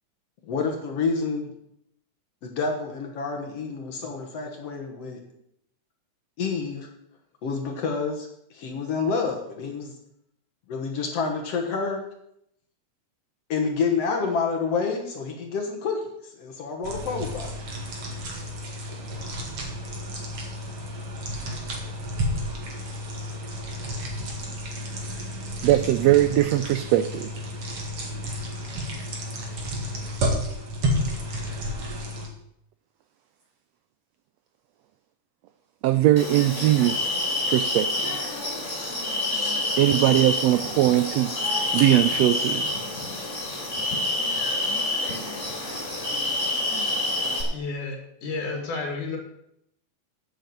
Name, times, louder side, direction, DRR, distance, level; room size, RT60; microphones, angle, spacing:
voice 1, 0.5-1.5 2.4-5.2 6.4-6.9 7.4-8.3 8.5-9.9 10.7-12.0 13.5-17.5, left 4 dB, 60° left, 3 dB, 2.2 m, -28 dB
sound 1, 16.8-32.3, equal, 50° right, 2.8 m, -31 dB
voice 2, 25.6-27.3 35.8-37.1 37.5-38.2 39.8-42.7, right 14 dB, 85° right, 12 dB, 1.4 m, -21 dB
sound 2, 36.2-47.4, left 2 dB, 25° left, 3.0 m, -27 dB
voice 3, 47.5-49.2, left 3 dB, 80° left, 1 dB, 3.7 m, -31 dB
8.6 x 8.2 x 7.8 m, 0.75 s
omnidirectional pair, 3.5 m